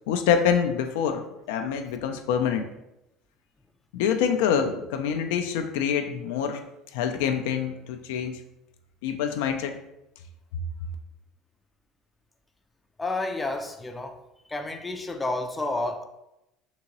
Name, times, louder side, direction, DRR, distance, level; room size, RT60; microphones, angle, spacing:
voice 1, 0.1-2.7 3.9-6.6 6.9-8.4 9.0-9.8, left 8 dB, 80° left, 6 dB, 0.3 m, -26 dB
voice 2, 13.0-14.2 14.5-16.1, left 2 dB, 15° left, 5 dB, 0.5 m, -30 dB
3.7 x 2.8 x 2.9 m, 0.88 s
supercardioid pair, 85°, 0 cm